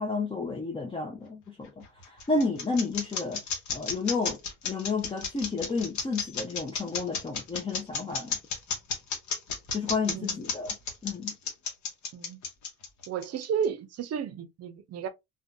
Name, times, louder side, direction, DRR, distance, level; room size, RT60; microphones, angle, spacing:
voice 1, 0.0-3.4 3.7-4.4 4.6-8.4 9.7-10.7 11.0-11.3, left 3 dB, 20° left, 0.4 m, -31 dB
sound 1, 1.6-13.6, left 5 dB, 70° left, 0.9 m, -32 dB
voice 2, 10.0-10.5 12.1-12.4 13.1-15.1, right 7 dB, 55° right, 0.5 m, -33 dB
2.6 x 2.2 x 2.3 m
cardioid pair, 90°, 30 cm